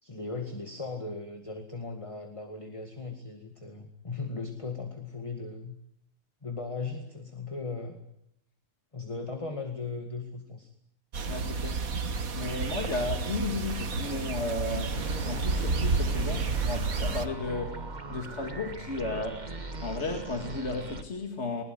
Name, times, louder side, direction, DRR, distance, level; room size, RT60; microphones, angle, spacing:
voice 1, 0.0-5.8 6.4-8.0 8.9-10.7, left 3 dB, 20° left, 2.1 m, -37 dB
sound 1, 11.1-17.3, right 4 dB, 70° right, 1.9 m, -30 dB
voice 2, 11.3-11.8 12.3-19.5 19.8-21.6, left 3 dB, 50° left, 2.5 m, -34 dB
sound 2, 14.9-21.0, right 2 dB, 30° right, 1.7 m, -39 dB
21.0 x 21.0 x 9.5 m
omnidirectional pair, 1.5 m